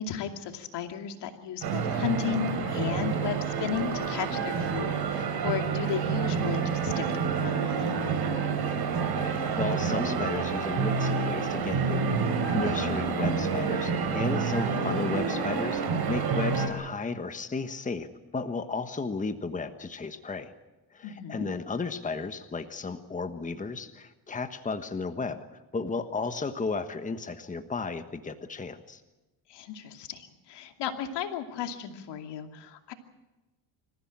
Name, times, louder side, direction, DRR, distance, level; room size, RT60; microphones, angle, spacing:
voice 1, 0.0-7.8 21.0-21.5 29.5-32.9, left 8 dB, 75° left, 5 dB, 2.6 m, -34 dB
sound 1, 1.6-16.7, right 5 dB, 65° right, 4.6 m, -28 dB
voice 2, 9.3-12.1 12.5-18.1 18.3-20.5 20.9-25.4 25.7-29.0, left 4 dB, 20° left, 8 dB, 1.4 m, -34 dB
26.5 x 15.0 x 8.8 m, 1.1 s
cardioid pair, 110°, 42 cm